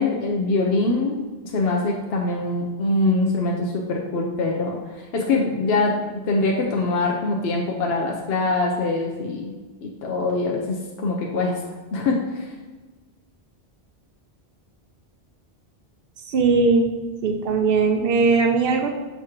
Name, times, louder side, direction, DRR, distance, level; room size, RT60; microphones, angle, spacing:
voice 1, 0.0-9.5 9.8-11.5 11.9-12.5, left 3 dB, 70° left, 0 dB, 0.9 m, -23 dB
voice 2, 16.3-16.9 17.2-18.9, right 4 dB, 65° right, 4 dB, 0.9 m, -19 dB
6.5 x 2.9 x 4.9 m, 1.3 s
omnidirectional pair, 1.1 m